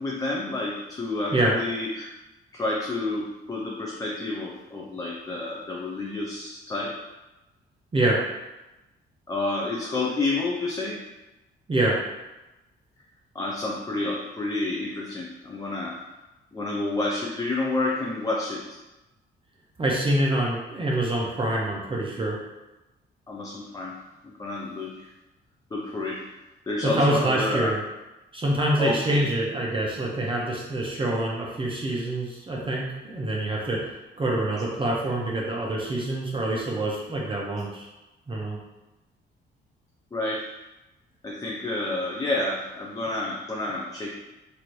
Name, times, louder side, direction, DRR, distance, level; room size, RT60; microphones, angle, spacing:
voice 1, 0.0-2.1 2.5-7.0 9.3-11.0 13.3-16.0 16.5-18.8 23.3-24.0 24.2-25.1 25.7-26.2 26.7-27.7 28.8-29.3 40.1-40.5 41.2-44.1, left 2 dB, 20° left, -2 dB, 0.4 m, -29 dB
voice 2, 19.8-22.4 26.8-27.8 28.3-33.8 34.2-37.9 38.3-38.6, right 1 dB, 25° right, -3 dB, 0.6 m, -26 dB
3.1 x 2.5 x 3.0 m, 1.0 s
cardioid pair, 90°, 20 cm